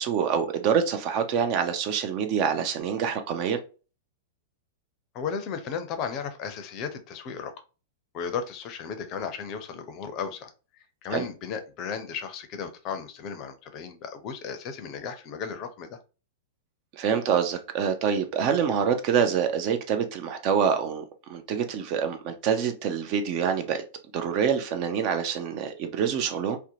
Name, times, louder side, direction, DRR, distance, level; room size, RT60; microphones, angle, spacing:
voice 1, 0.0-3.6 11.1-11.2 16.9-21.0 21.3-23.8 24.1-26.6, right 7 dB, 45° right, 0.5 m, -26 dB
voice 2, 5.1-7.5 8.1-10.5 11.0-16.0, left 6 dB, 40° left, 0.5 m, -35 dB
2.7 x 2.1 x 2.6 m
figure-of-eight pair, 100°, 0 cm